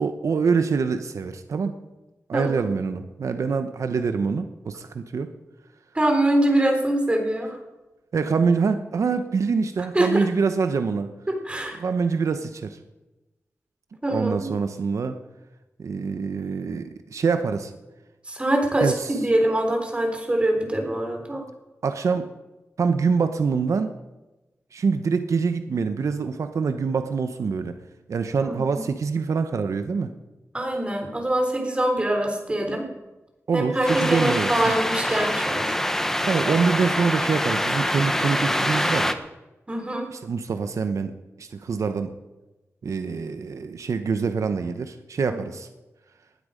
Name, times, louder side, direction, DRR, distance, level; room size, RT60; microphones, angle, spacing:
voice 1, 0.0-1.8 2.3-5.3 8.1-11.1 11.8-12.8 14.1-15.2 15.8-17.7 18.8-19.1 21.8-22.3 22.8-23.9 24.7-27.8 28.1-30.1 33.5-34.5 36.2-39.2 40.1-41.1 41.4-42.1 42.8-45.7, right 5 dB, 85° right, 9 dB, 0.9 m, -25 dB
voice 2, 2.3-2.6 5.9-7.6 9.9-10.3 11.3-11.8 14.0-14.4 18.2-21.5 28.4-28.8 30.5-32.9 33.5-35.8 39.7-40.1 45.3-45.4, right 1 dB, 20° right, 3 dB, 3.8 m, -24 dB
sound 1, 33.9-39.1, left 1 dB, 10° left, 1.1 m, -25 dB
19.0 x 12.5 x 5.1 m, 1.0 s
wide cardioid pair, 110°, 5 cm